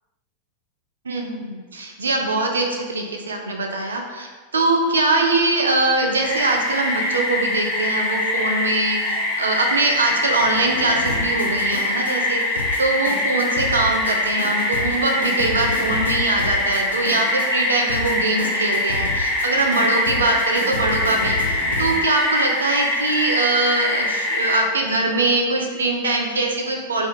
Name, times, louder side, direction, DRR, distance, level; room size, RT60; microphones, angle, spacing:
voice 1, 1.0-27.1, right 2 dB, 70° right, 2 dB, 0.3 m, -22 dB
sound 1, 6.1-22.0, left 3 dB, 75° left, 0.4 m, -32 dB
sound 2, 6.2-24.6, left 1 dB, 35° left, 0.9 m, -23 dB
2.4 x 2.4 x 2.8 m, 1.4 s
figure-of-eight pair, 90°, 0 cm